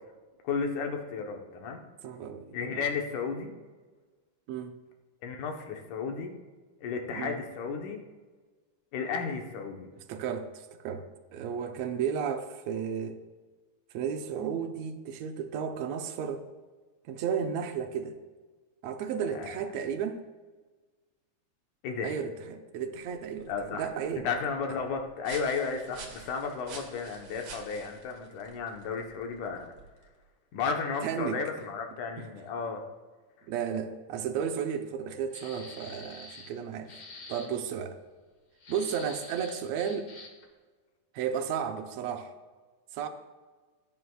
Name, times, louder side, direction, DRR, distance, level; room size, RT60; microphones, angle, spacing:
voice 1, 0.4-1.8 2.5-3.5 5.2-6.4 6.8-8.0 8.9-9.9 19.3-19.5 21.8-22.1 23.5-23.9 24.2-29.7 30.5-32.9, left 5 dB, 85° left, 3 dB, 2.6 m, -33 dB
voice 2, 2.0-2.8 4.5-4.8 7.1-7.4 10.1-11.0 11.3-13.2 13.9-16.4 17.1-18.2 18.8-20.2 22.0-24.3 31.0-31.4 32.2-32.3 33.5-36.9 37.3-38.0 38.7-40.1 41.1-42.3 42.9-43.1, right 7 dB, 70° right, 7 dB, 1.8 m, -33 dB
sound 1, 22.8-30.2, right 4 dB, 55° right, 2.0 m, -49 dB
sound 2, 35.3-36.6 36.9-37.5 38.6-40.5, left 3 dB, 50° left, 2.0 m, -46 dB
17.0 x 9.3 x 2.4 m, 1.4 s
omnidirectional pair, 3.4 m